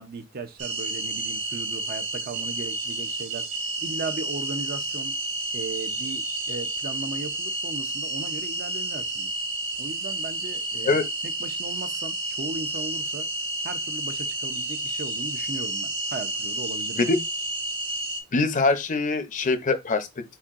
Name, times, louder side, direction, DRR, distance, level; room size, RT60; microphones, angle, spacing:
voice 1, 0.0-3.5 3.8-5.1 5.5-9.3 9.8-13.3 13.6-17.1, right 3 dB, 45° right, 0.6 m, -37 dB
sound 1, 0.6-18.2, right 2 dB, 70° right, 1.3 m, -31 dB
voice 2, 18.3-20.4, left 3 dB, 40° left, 0.6 m, -23 dB
4.5 x 4.2 x 2.4 m
head